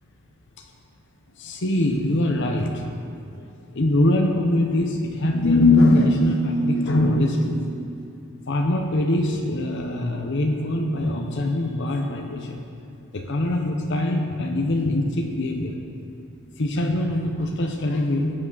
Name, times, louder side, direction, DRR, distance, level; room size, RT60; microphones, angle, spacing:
voice 1, 1.4-2.8 3.7-7.6 8.5-12.6 13.1-15.7 16.6-18.3, left 1 dB, 60° left, 3 dB, 0.9 m, -22 dB
14.5 x 9.0 x 4.0 m, 2.5 s
head